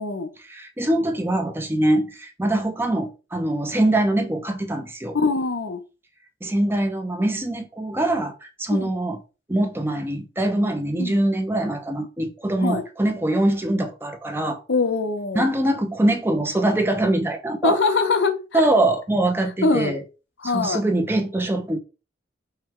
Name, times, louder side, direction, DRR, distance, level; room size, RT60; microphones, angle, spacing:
voice 1, 0.4-5.2 6.4-9.2 9.5-14.6 15.3-17.8 18.5-20.0 20.4-21.8, right 1 dB, 10° right, 0.6 m, -23 dB
voice 2, 5.1-5.8 8.7-8.9 11.0-11.1 12.6-12.8 14.7-15.5 17.6-18.6 19.6-19.9 20.4-20.8, left 3 dB, 80° left, 0.7 m, -22 dB
5.5 x 2.3 x 3.6 m
head